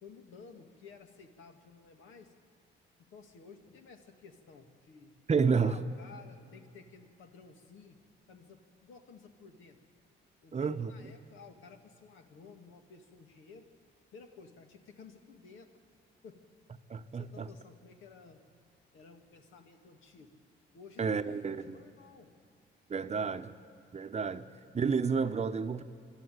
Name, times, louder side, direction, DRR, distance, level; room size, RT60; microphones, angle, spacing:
voice 1, 0.0-2.3 3.0-5.1 5.6-8.0 8.3-9.8 10.4-13.6 14.1-15.7 16.2-16.4 17.1-18.4 18.9-20.4 20.7-22.3 23.1-23.4 24.3-24.6, left 5 dB, 80° left, 5 dB, 2.1 m, -54 dB
voice 2, 5.3-5.8 10.5-11.1 16.9-17.5 21.0-21.8 22.9-23.5 23.9-24.5 24.7-25.8, right 5 dB, 35° right, 10 dB, 0.9 m, -30 dB
25.0 x 12.5 x 9.4 m, 2.5 s
cardioid pair, 90°, 20 cm